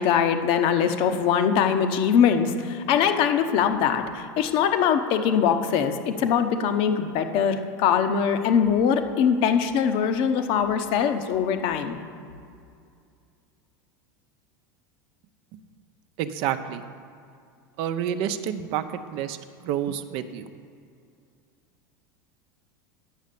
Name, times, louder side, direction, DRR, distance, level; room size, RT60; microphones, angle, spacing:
voice 1, 0.0-12.0, left 7 dB, 55° left, 8 dB, 0.9 m, -22 dB
voice 2, 16.2-16.8 17.8-20.5, right 10 dB, 60° right, 10 dB, 0.6 m, -29 dB
9.3 x 6.3 x 6.9 m, 2.4 s
supercardioid pair, 105°, 11 cm